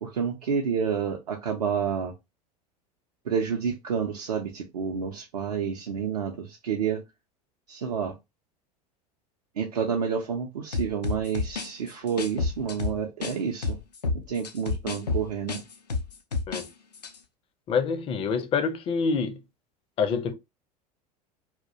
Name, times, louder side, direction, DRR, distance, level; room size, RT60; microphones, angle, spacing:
voice 1, 0.0-2.1 3.3-7.0 7.7-8.1 9.6-13.8 14.1-15.6, right 7 dB, 75° right, 0.5 m, -29 dB
sound 1, 10.7-13.4 13.6-16.7 16.9-17.2, left 4 dB, 85° left, 0.4 m, -30 dB
voice 2, 17.7-19.4 20.0-20.3, left 5 dB, 30° left, 0.4 m, -26 dB
2.3 x 2.1 x 2.6 m
figure-of-eight pair, 75°, 20 cm